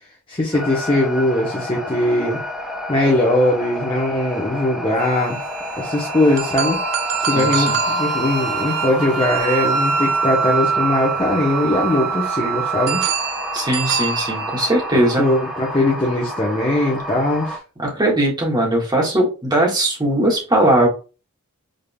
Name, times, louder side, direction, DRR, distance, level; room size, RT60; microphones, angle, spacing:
voice 1, 0.3-2.4 2.9-5.4 5.7-6.8 7.3-13.0 14.9-17.6, left 1 dB, 25° left, -2 dB, 1.0 m, -20 dB
sound 1, 0.5-17.6, equal, ahead, 0.8 m, -29 dB
Wind instrument woodwind instrument, 5.0-13.2, right 6 dB, 90° right, 0.6 m, -25 dB
sound 2, 6.4-10.4 12.9-15.2, right 4 dB, 45° right, 0.5 m, -27 dB
voice 2, 7.3-7.7 13.5-15.3 17.8-20.9, right 1 dB, 20° right, -2 dB, 1.6 m, -19 dB
5.1 x 3.7 x 2.3 m, 0.32 s
head